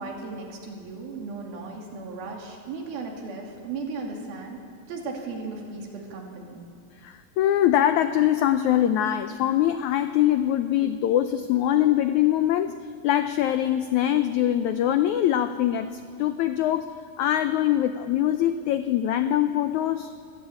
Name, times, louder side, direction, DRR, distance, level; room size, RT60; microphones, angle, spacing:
voice 1, 0.0-4.6 4.9-6.6, right 4 dB, 85° right, 0 dB, 4.4 m, -36 dB
voice 2, 7.0-20.1, left 11 dB, 90° left, 10 dB, 1.6 m, -23 dB
26.0 x 16.5 x 8.7 m, 2.2 s
omnidirectional pair, 4.2 m